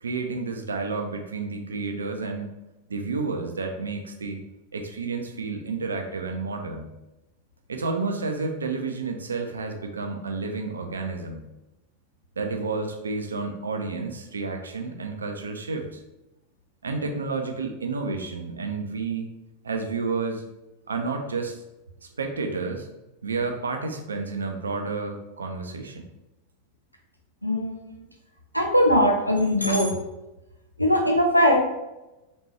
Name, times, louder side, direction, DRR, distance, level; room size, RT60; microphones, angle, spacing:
voice 1, 0.0-2.5 2.9-4.4 4.7-6.9 7.7-11.4 12.4-16.0 16.8-19.3 19.6-20.4 20.9-21.6 22.2-22.9 23.2-26.1, right 4 dB, 70° right, 4 dB, 0.6 m, -30 dB
voice 2, 27.4-27.7 28.5-29.9 30.8-31.6, equal, 90° left, 1 dB, 0.6 m, -20 dB
4.2 x 3.4 x 3.2 m, 0.98 s
figure-of-eight pair, 90°, 0 cm